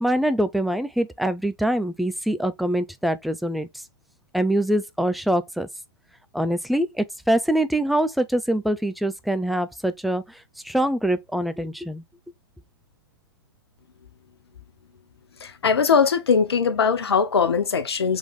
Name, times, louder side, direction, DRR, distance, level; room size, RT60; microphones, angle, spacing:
voice 1, 0.0-3.7 4.3-5.7 6.3-10.2 10.6-12.0, right 1 dB, ahead, 0.4 m, -24 dB
voice 2, 15.4-18.2, left 6 dB, 85° left, 0.5 m, -21 dB
3.7 x 3.0 x 3.5 m
hypercardioid pair, 110°, 13 cm